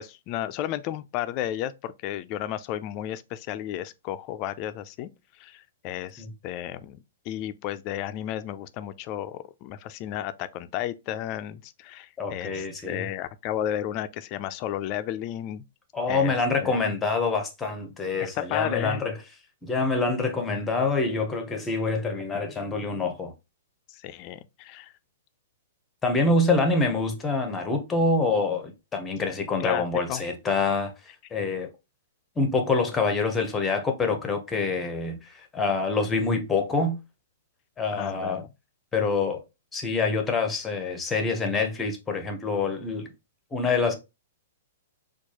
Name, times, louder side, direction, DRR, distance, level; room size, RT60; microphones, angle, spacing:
voice 1, 0.0-5.1 5.4-7.0 7.3-15.6 16.1-16.3 16.6-16.8 18.2-19.0 23.9-24.9 29.6-30.2 37.9-38.5, left 12 dB, 30° left, 0.3 m, -33 dB
voice 2, 12.2-13.1 15.9-19.1 19.6-23.3 26.0-30.9 31.3-31.7 32.4-37.0 37.8-38.4 38.9-39.4 39.7-43.1 43.5-44.0, left 3 dB, 10° left, 0.7 m, -26 dB
4.5 x 2.3 x 2.8 m
hypercardioid pair, 160°, 0 cm